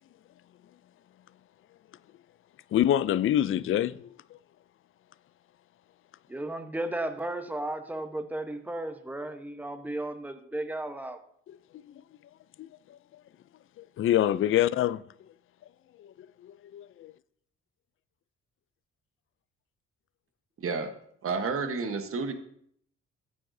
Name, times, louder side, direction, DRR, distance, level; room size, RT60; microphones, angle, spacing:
voice 1, 2.7-4.4 11.5-11.9 12.6-13.0 13.8-15.0 16.0-16.1 16.4-17.1, left 12 dB, 45° left, 0.4 m, -27 dB
voice 2, 6.3-11.2, right 1 dB, 5° right, 1.0 m, -34 dB
voice 3, 20.6-20.9 21.2-22.3, right 4 dB, 45° right, 1.2 m, -30 dB
15.5 x 8.5 x 2.7 m
cardioid pair, 90°, 30 cm